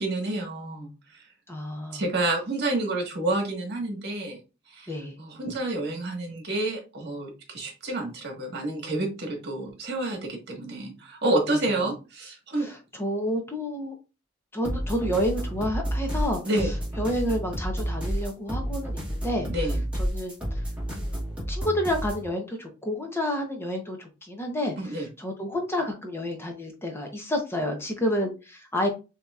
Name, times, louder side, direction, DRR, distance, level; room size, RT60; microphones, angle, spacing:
voice 1, 0.0-1.3 1.9-4.4 4.7-4.9 5.2-12.7 16.4-16.7 19.5-19.8 24.8-25.1, right 2 dB, 55° right, 1 dB, 1.5 m, -29 dB
voice 2, 1.5-2.0 4.9-5.2 11.8-11.9 12.5-13.9 14.5-19.5 20.0-20.6 21.0-21.2 21.5-28.9, equal, 10° left, 3 dB, 0.7 m, -30 dB
sound 1, 14.6-22.3, equal, 5° right, 1.8 m, -30 dB
7.0 x 2.8 x 2.4 m, 0.30 s
head